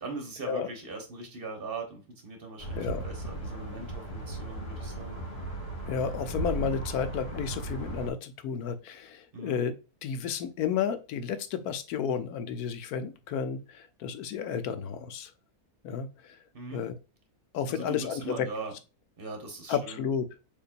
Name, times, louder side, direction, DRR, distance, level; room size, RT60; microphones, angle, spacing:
voice 1, 0.0-5.2 9.3-9.6 16.5-16.8 17.7-18.7 19.2-20.0, right 3 dB, 40° right, 3 dB, 1.2 m, -40 dB
sound 1, 2.6-8.1, right 2 dB, 40° left, 1.7 m, -36 dB
voice 2, 5.9-9.7 10.0-15.3 15.8-16.4 16.7-16.9 17.5-18.5 19.7-20.3, left 7 dB, 80° left, 10 dB, 1.1 m, -32 dB
6.6 x 3.0 x 2.5 m, 0.31 s
omnidirectional pair, 1.6 m